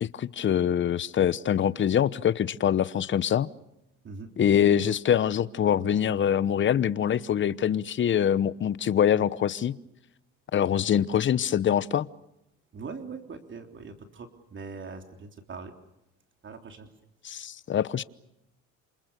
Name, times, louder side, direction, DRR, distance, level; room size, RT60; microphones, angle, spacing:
voice 1, 0.0-3.5 4.4-9.7 10.5-12.1 17.2-18.0, left 9 dB, 35° left, 17 dB, 1.0 m, -24 dB
voice 2, 4.0-4.6 12.7-15.7 16.4-16.9, right 4 dB, 35° right, 5 dB, 3.4 m, -41 dB
28.5 x 27.5 x 6.8 m, 0.84 s
supercardioid pair, 95°, 32 cm